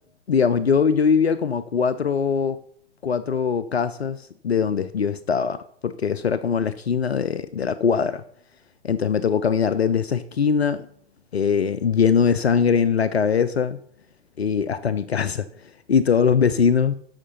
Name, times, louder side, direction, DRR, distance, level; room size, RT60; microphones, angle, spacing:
voice 1, 0.3-2.6 3.0-8.2 8.8-10.9 11.3-13.8 14.4-15.5 15.9-16.9, left 6 dB, 80° left, 0.6 m, -21 dB
14.0 x 5.8 x 5.5 m
figure-of-eight pair, 100°, 31 cm